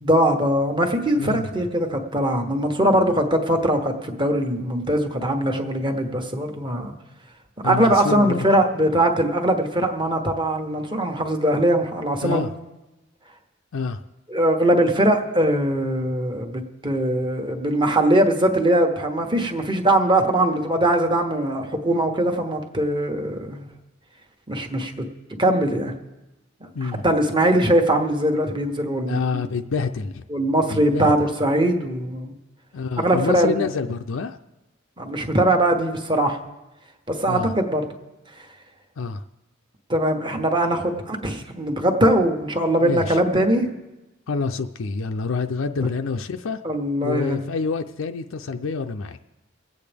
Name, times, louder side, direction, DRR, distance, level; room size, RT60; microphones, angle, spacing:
voice 1, 0.0-6.9 7.6-12.4 14.3-23.7 24.5-25.0 25.4-25.9 26.6-29.2 30.3-32.3 33.0-33.6 35.0-36.4 37.1-37.8 39.9-43.7 46.6-47.4, right 1 dB, 25° right, 4 dB, 1.1 m, -21 dB
voice 2, 7.6-8.4 12.2-12.5 13.7-14.0 26.7-27.0 29.1-30.2 30.7-31.1 32.7-34.4 37.3-37.5 39.0-39.2 42.8-43.2 44.3-46.6 47.0-49.2, left 4 dB, 70° left, 7 dB, 0.5 m, -27 dB
23.5 x 8.5 x 3.5 m, 1.0 s
head